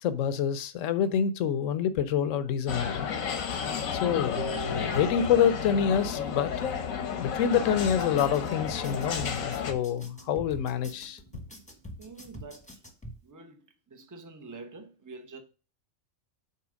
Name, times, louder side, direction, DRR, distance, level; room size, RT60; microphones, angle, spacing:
voice 1, 0.0-3.1 3.9-6.7 7.2-11.2, left 8 dB, 70° left, 1.0 m, -27 dB
sound 1, 2.7-9.7, left 7 dB, 90° left, 1.3 m, -32 dB
Harp, 4.4-10.4, right 4 dB, 55° right, 1.6 m, -44 dB
sound 2, 7.8-13.2, left 1 dB, 5° left, 1.0 m, -44 dB
voice 2, 12.0-12.8 13.2-15.4, right 3 dB, 20° right, 0.7 m, -46 dB
5.7 x 4.4 x 6.2 m
omnidirectional pair, 1.4 m